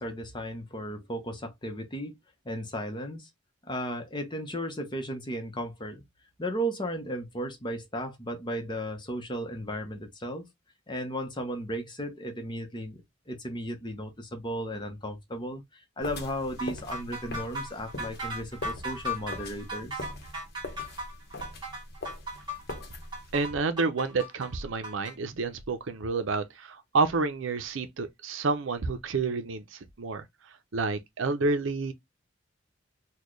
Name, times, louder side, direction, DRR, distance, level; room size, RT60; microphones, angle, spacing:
voice 1, 0.0-2.1 2.4-3.3 3.6-6.0 6.4-10.4 10.9-20.1, equal, 25° left, 0.8 m, -35 dB
sound 1, 16.0-23.4, left 2 dB, 50° left, 0.9 m, -42 dB
sound 2, 16.6-25.1, equal, 20° right, 1.2 m, -37 dB
voice 2, 23.3-30.2 30.7-31.9, right 3 dB, 70° right, 0.6 m, -29 dB
4.1 x 2.2 x 3.1 m
head